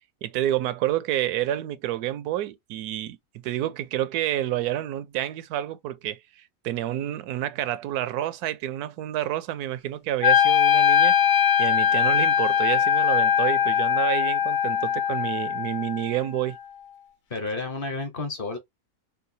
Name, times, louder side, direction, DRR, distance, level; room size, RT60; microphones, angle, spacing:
voice 1, 0.2-3.2 3.4-11.1 11.6-16.6, right 13 dB, 90° right, 1.1 m, -29 dB
Wind instrument woodwind instrument, 10.2-16.3, left 8 dB, 90° left, 0.4 m, -21 dB
voice 2, 17.3-18.6, left 3 dB, 45° left, 1.0 m, -31 dB
4.6 x 2.3 x 2.7 m
omnidirectional pair, 1.6 m